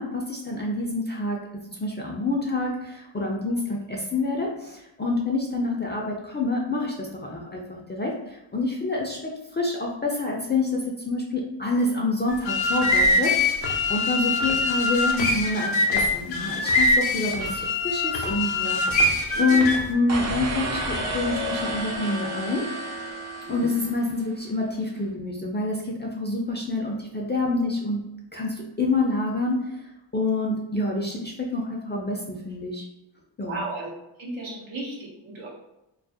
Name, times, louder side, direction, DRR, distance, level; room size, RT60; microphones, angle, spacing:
voice 1, 0.0-1.4 1.7-22.6 23.5-28.0 28.3-29.6 30.1-32.8 33.4-33.6, left 2 dB, 25° left, -2 dB, 0.4 m, -27 dB
sound 1, 12.3-19.9, left 2 dB, 70° left, 0.6 m, -23 dB
sound 2, 20.1-24.3, right 1 dB, 35° right, 0.5 m, -31 dB
voice 2, 33.5-33.9 34.2-35.5, right 2 dB, 85° right, -4 dB, 0.8 m, -35 dB
2.3 x 2.0 x 2.6 m, 0.91 s
cardioid pair, 50°, 47 cm